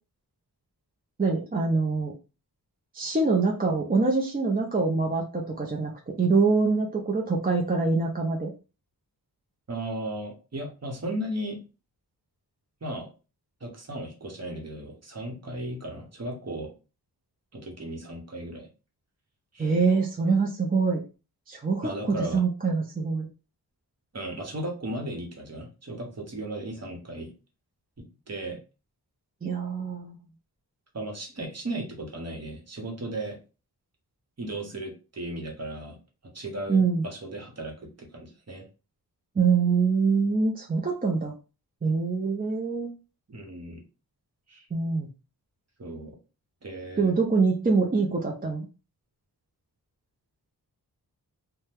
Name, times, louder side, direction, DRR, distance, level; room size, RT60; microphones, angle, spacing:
voice 1, 1.2-2.1 2.9-8.5 19.6-21.0 21.5-23.3 29.4-30.2 36.7-37.0 39.4-41.3 41.8-42.9 44.7-45.1 47.0-48.6, right 4 dB, 20° right, -1 dB, 0.5 m, -24 dB
voice 2, 9.7-11.6 12.8-13.1 13.6-16.7 17.5-18.7 19.5-19.7 21.8-22.4 24.1-27.3 28.3-28.6 30.9-33.4 34.4-36.0 36.3-38.7 43.3-43.8 44.5-44.7 45.8-46.2 46.6-47.1, right 1 dB, 40° right, 2 dB, 0.9 m, -36 dB
2.7 x 2.2 x 3.4 m, 0.32 s
wide cardioid pair, 100°, 40 cm